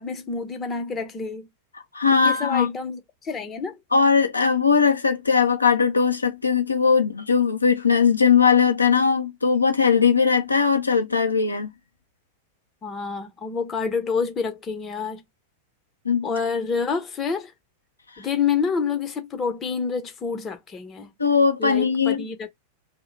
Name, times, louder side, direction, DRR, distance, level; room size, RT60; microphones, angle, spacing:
voice 1, 0.0-1.5 2.1-3.8 12.8-15.2 16.2-17.5 18.2-21.1 21.6-22.5, left 5 dB, 25° left, 0.7 m, -28 dB
voice 2, 1.9-2.7 3.9-11.7 16.1-16.3 21.2-22.2, left 5 dB, 80° left, 0.5 m, -19 dB
2.8 x 2.0 x 2.5 m
figure-of-eight pair, 90°, 0 cm